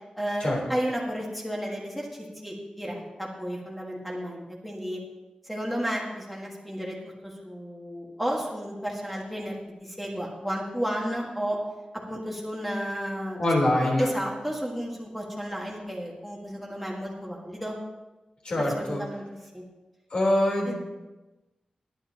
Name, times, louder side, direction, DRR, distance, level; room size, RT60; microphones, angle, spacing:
voice 1, 0.2-5.0 5.4-9.5 9.8-11.6 12.1-13.4 13.8-17.8 18.6-19.2 19.5-19.6 20.6-20.8, equal, 5° left, -2 dB, 1.6 m, -32 dB
voice 2, 13.4-14.1 18.5-19.0 20.1-20.8, left 1 dB, 50° left, -2 dB, 3.5 m, -24 dB
19.5 x 9.4 x 2.9 m, 1.1 s
wide cardioid pair, 170°, 2 cm